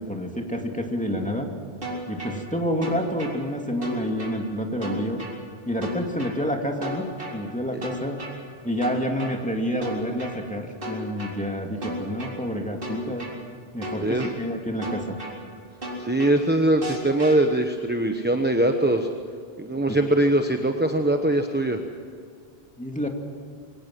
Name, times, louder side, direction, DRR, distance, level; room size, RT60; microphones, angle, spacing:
voice 1, 0.0-1.5 2.1-5.2 5.7-7.1 7.3-8.2 8.6-13.3 13.7-15.2 19.9-20.0 22.8-23.1, equal, 5° left, 2 dB, 2.3 m, -28 dB
sound 1, 1.8-2.3 2.8-3.3 3.8-4.3 4.8-5.3 5.8-6.3 6.8-7.3 7.8-8.3 8.8-9.3 9.8-10.3 10.8-11.3 11.8-12.3 12.8-13.3 13.8-14.3 14.8-15.3 15.8-16.3 16.8-17.3, right 1 dB, 60° right, 4.2 m, -34 dB
voice 2, 14.0-14.3 16.0-19.1 19.6-21.8, right 1 dB, 10° right, 5 dB, 1.0 m, -22 dB
23.5 x 18.0 x 7.7 m, 2.2 s
omnidirectional pair, 1.1 m